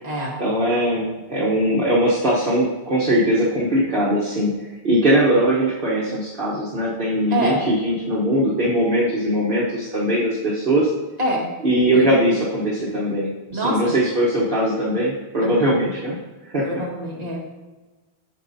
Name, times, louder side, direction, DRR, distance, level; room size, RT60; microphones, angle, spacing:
voice 1, 0.4-10.9 11.6-16.2 16.4-16.8, equal, 55° right, -7 dB, 1.3 m, -20 dB
voice 2, 13.5-13.9 15.4-15.7 16.6-17.4, right 1 dB, 40° right, -4 dB, 1.7 m, -25 dB
8.9 x 6.4 x 2.7 m, 1.2 s
omnidirectional pair, 1.1 m